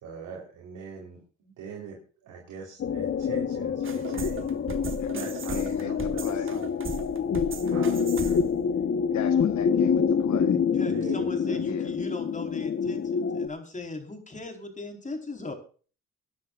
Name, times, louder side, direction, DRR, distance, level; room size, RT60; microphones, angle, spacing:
voice 1, 0.0-4.7 5.1-6.8 7.6-8.4 10.8-11.6, right 5 dB, 80° right, -2 dB, 4.0 m, -42 dB
sound 1, 2.8-13.5, left 6 dB, 45° left, 1.2 m, -26 dB
sound 2, 3.8-8.6, right 5 dB, 40° right, 1.7 m, -37 dB
voice 2, 5.5-6.5 9.1-10.6 11.6-11.9, left 8 dB, 65° left, 10 dB, 1.3 m, -37 dB
voice 3, 10.7-15.5, left 2 dB, 25° left, 4 dB, 4.4 m, -38 dB
26.0 x 10.5 x 2.5 m, 0.39 s
cardioid pair, 90°, 30 cm